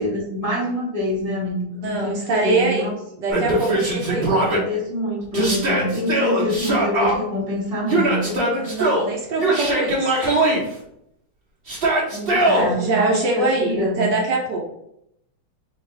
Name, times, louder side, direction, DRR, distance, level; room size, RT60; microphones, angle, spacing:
voice 1, 0.0-2.9 4.4-8.5 12.1-14.1, left 1 dB, 40° left, -7 dB, 0.5 m, -26 dB
voice 2, 1.8-2.9 3.2-4.3 8.6-10.2 12.4-14.6, right 3 dB, 65° right, -1 dB, 1.2 m, -23 dB
Yell, 3.3-4.6 5.3-7.1 7.9-9.1 9.4-10.6 11.7-12.7, right 2 dB, 40° right, 0.8 m, -20 dB
3.2 x 2.4 x 4.3 m, 0.76 s
omnidirectional pair, 2.3 m